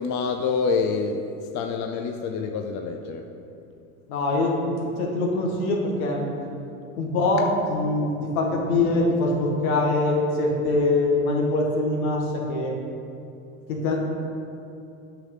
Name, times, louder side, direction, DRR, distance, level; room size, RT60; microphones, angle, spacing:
voice 1, 0.0-3.3 8.0-8.2, left 5 dB, 40° left, 4 dB, 0.6 m, -27 dB
voice 2, 4.1-6.3 7.0-12.8 13.7-14.2, left 2 dB, 70° left, 0 dB, 1.7 m, -23 dB
8.6 x 6.3 x 3.9 m, 2.7 s
hypercardioid pair, 85°, 44 cm